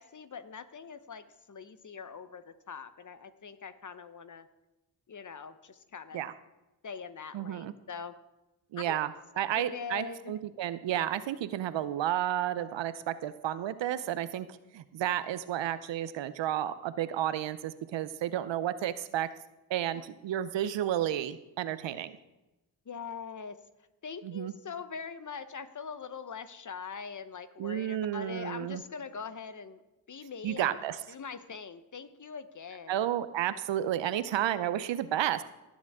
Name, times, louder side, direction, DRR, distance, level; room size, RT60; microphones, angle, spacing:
voice 1, 0.0-4.5 5.1-6.2 6.8-8.1 8.8-9.1 9.3-10.3 19.9-20.0 22.8-23.6 24.0-29.8 30.1-30.8 31.1-33.0, left 6 dB, 40° left, 12 dB, 0.9 m, -42 dB
voice 2, 7.3-7.7 8.7-9.1 9.4-14.5 14.7-19.3 19.7-22.1 24.2-24.5 27.6-28.8 30.4-31.0 32.9-35.4, right 11 dB, 70° right, 13 dB, 0.7 m, -32 dB
17.5 x 7.3 x 3.6 m, 1.0 s
supercardioid pair, 45°, 47 cm